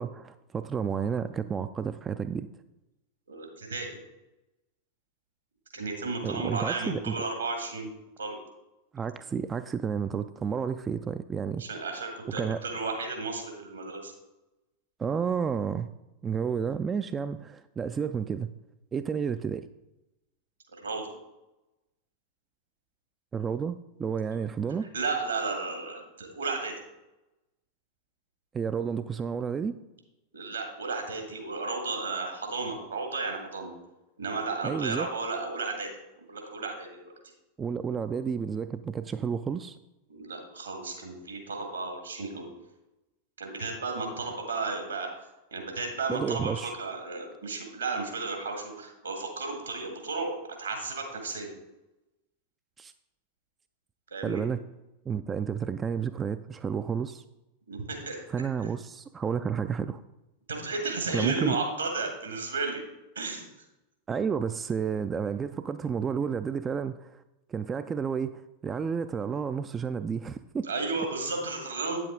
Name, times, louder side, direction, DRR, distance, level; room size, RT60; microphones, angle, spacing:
voice 1, 0.0-2.5 6.2-7.2 8.9-11.7 12.3-12.6 15.0-15.9 16.2-18.5 18.9-19.7 23.3-24.9 28.5-29.7 34.6-35.1 37.6-39.8 46.1-46.7 52.8-52.9 54.2-54.6 55.1-57.2 58.3-60.0 61.1-61.6 64.1-67.2 67.5-70.7, right 6 dB, 20° right, 11 dB, 0.3 m, -31 dB
voice 2, 3.3-4.0 5.7-7.9 8.2-8.4 11.6-14.1 20.8-21.1 24.3-24.4 24.9-26.7 30.3-33.7 34.2-35.9 36.3-37.0 40.1-42.5 43.4-45.1 45.5-51.5 54.1-54.4 57.7-58.2 60.5-62.8 63.2-63.4 70.6-72.0, right 3 dB, 70° right, 3 dB, 2.0 m, -33 dB
9.0 x 7.5 x 3.8 m, 0.97 s
figure-of-eight pair, 90°, 0 cm